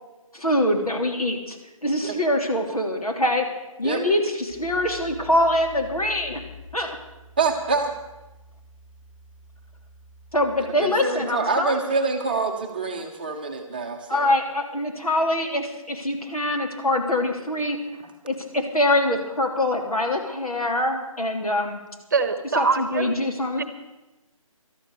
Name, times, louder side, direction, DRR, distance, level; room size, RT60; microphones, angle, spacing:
voice 1, 0.3-1.6 1.8-3.4 3.8-6.4 6.7-7.0 10.3-11.8 14.1-17.8 18.2-21.8 22.5-23.6, left 1 dB, 85° left, 3 dB, 3.2 m, -24 dB
sound 1, 4.5-10.7, left 4 dB, 20° left, 3.7 m, -46 dB
voice 2, 7.4-7.9 10.6-14.3, right 4 dB, 15° right, 2 dB, 0.8 m, -26 dB
voice 3, 22.1-23.2 23.6-23.7, right 4 dB, 35° right, 11 dB, 1.0 m, -23 dB
12.5 x 12.5 x 6.8 m, 1.0 s
figure-of-eight pair, 165°, 18 cm